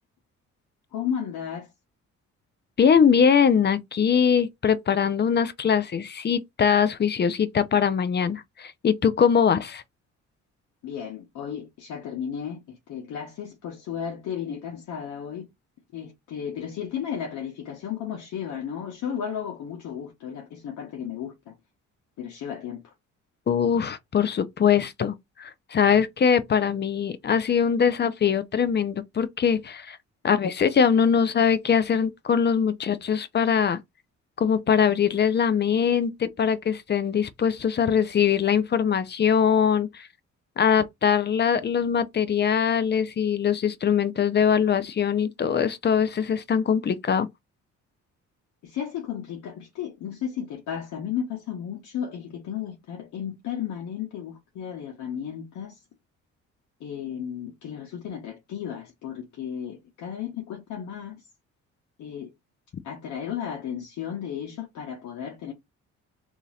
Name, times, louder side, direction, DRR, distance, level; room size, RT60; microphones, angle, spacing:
voice 1, 0.9-1.7 10.8-15.5 15.9-21.5 22.2-22.8 48.6-55.8 56.8-61.2 62.0-62.3 62.8-65.5, left 8 dB, 75° left, 1.0 m, -34 dB
voice 2, 2.8-9.8 23.5-30.0 30.2-33.8 34.4-40.1 40.6-47.3, left 7 dB, 35° left, 0.6 m, -22 dB
2.9 x 2.8 x 4.0 m
cardioid pair, 90°, 30 cm